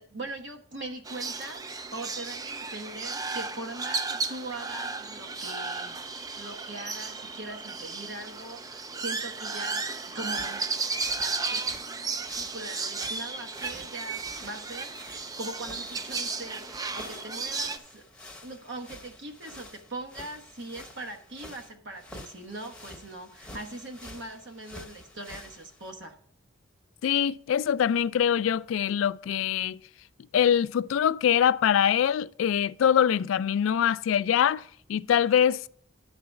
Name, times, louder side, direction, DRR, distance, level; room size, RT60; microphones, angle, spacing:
voice 1, 0.0-6.0 6.4-10.6 11.2-11.6 12.4-18.0 18.4-26.1, right 2 dB, 65° right, 1.1 m, -41 dB
sound 1, 1.1-17.8, right 4 dB, 20° right, 0.4 m, -34 dB
sound 2, 4.0-10.7, right 4 dB, 80° right, 2.8 m, -49 dB
sound 3, 10.2-25.9, left 1 dB, 5° left, 0.9 m, -49 dB
voice 2, 27.0-29.8 30.3-34.6 34.9-35.6, left 9 dB, 80° left, 0.3 m, -23 dB
10.5 x 3.9 x 6.9 m
head